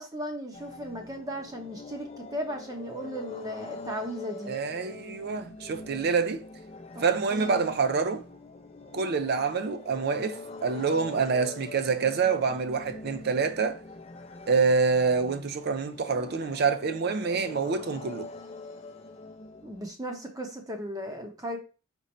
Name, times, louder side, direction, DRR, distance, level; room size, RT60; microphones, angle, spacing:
voice 1, 0.0-4.5 6.9-7.0 7.3-7.7 19.6-21.6, equal, 15° right, 0.8 m, -36 dB
sound 1, 0.5-19.9, left 3 dB, 30° left, 0.5 m, -44 dB
voice 2, 4.5-6.4 7.0-8.2 8.9-13.8 14.5-18.3, right 5 dB, 50° right, 0.4 m, -26 dB
4.5 x 2.5 x 4.1 m
head